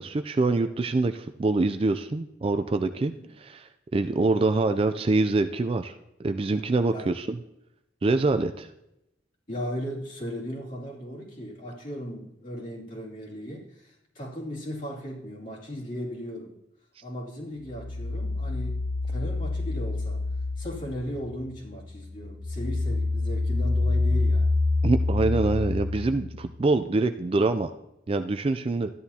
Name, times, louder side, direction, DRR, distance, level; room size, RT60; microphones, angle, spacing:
voice 1, 0.0-5.9 6.2-7.4 8.0-8.7 24.8-27.7 28.1-28.9, right 3 dB, 30° right, 9 dB, 0.3 m, -25 dB
voice 2, 9.5-16.5 17.0-20.2 20.6-24.5, equal, 45° left, -5 dB, 2.5 m, -37 dB
sound 1, 17.6-21.5 21.9-26.5, left 2 dB, 20° left, 1.8 m, -27 dB
14.0 x 10.5 x 2.8 m, 0.86 s
head